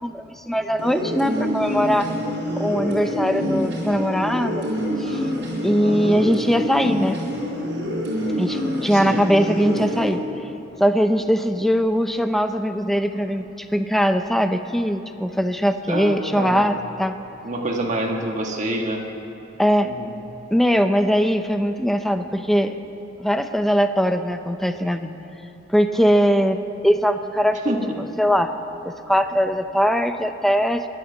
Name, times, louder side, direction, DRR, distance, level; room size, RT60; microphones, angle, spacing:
voice 1, 0.0-2.1 2.6-4.7 5.0-5.2 5.6-7.2 8.4-10.2 10.8-17.1 19.6-19.9 20.5-22.7 23.2-25.1 25.7-26.6 26.8-27.6 28.0-28.5 28.8-30.8, equal, ahead, 8 dB, 0.6 m, -21 dB
sound 1, 0.8-10.1, equal, 65° right, 4.5 m, -26 dB
voice 2, 5.8-6.3 8.9-9.2 15.9-16.6 17.4-19.0 19.8-20.1 27.6-27.9, right 1 dB, 40° right, 0 dB, 1.7 m, -27 dB
21.5 x 8.2 x 7.1 m, 2.9 s
head